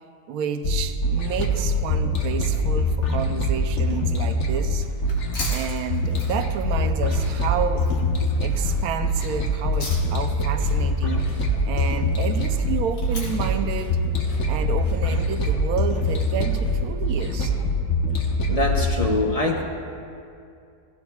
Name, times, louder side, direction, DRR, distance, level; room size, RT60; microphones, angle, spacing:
voice 1, 0.3-4.9 5.5-7.9 8.4-11.2 11.6-14.0 14.5-17.5, right 8 dB, 70° right, 8 dB, 1.1 m, -30 dB
sound 1, 0.6-19.1, left 1 dB, 50° left, 1.3 m, -24 dB
sound 2, 4.7-17.0, left 2 dB, 75° left, 3.1 m, -41 dB
voice 2, 18.5-19.6, left 2 dB, 30° left, 1 dB, 0.8 m, -24 dB
17.0 x 15.5 x 2.3 m, 2.4 s
omnidirectional pair, 1.7 m